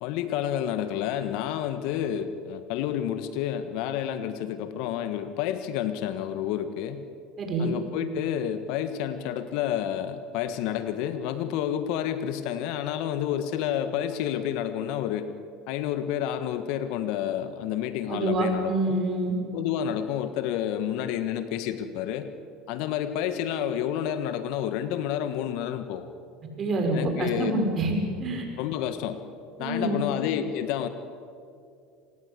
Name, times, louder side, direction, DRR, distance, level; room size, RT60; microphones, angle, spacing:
voice 1, 0.0-7.0 7.6-15.3 15.7-19.0 19.5-22.3 22.7-26.1 26.9-27.5 28.6-29.2 29.6-30.9, left 10 dB, 65° left, 10 dB, 1.6 m, -29 dB
voice 2, 7.4-7.7 18.1-19.3 26.6-28.4 29.6-30.0, right 2 dB, 40° right, 3 dB, 6.3 m, -26 dB
26.5 x 19.5 x 8.4 m, 2.4 s
hypercardioid pair, 85°, 0 cm